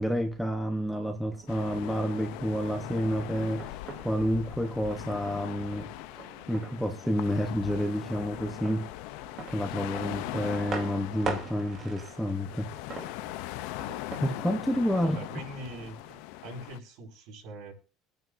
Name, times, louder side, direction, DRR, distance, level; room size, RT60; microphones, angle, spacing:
voice 1, 0.0-5.9 6.5-8.9 9.5-12.7 14.2-15.2, equal, ahead, 0.8 m, -29 dB
sound 1, 1.3-16.2, right 4 dB, 35° right, 2.6 m, -44 dB
sound 2, 1.5-16.8, left 16 dB, 70° left, 0.5 m, -40 dB
voice 2, 15.0-16.0 16.4-17.7, right 1 dB, 60° right, 5.0 m, -42 dB
22.5 x 9.3 x 2.6 m
cardioid pair, 175°, 0 cm